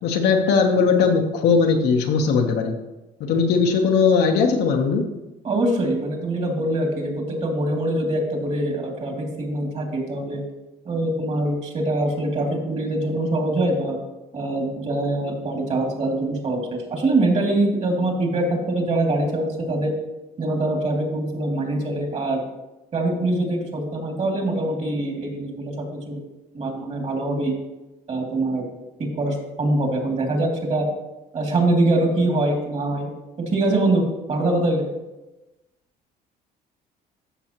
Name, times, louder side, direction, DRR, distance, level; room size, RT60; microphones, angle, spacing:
voice 1, 0.0-2.8 3.2-5.0, left 5 dB, 75° left, 1 dB, 1.1 m, -19 dB
voice 2, 5.4-10.4 10.8-14.0 14.3-19.9 20.4-22.4 22.9-26.2 26.5-27.5 28.1-28.7 29.2-30.9 31.3-33.1 33.4-34.0 34.3-34.9, right 2 dB, 40° right, 2 dB, 2.5 m, -23 dB
14.0 x 6.1 x 3.0 m, 1.0 s
cardioid pair, 110°, 17 cm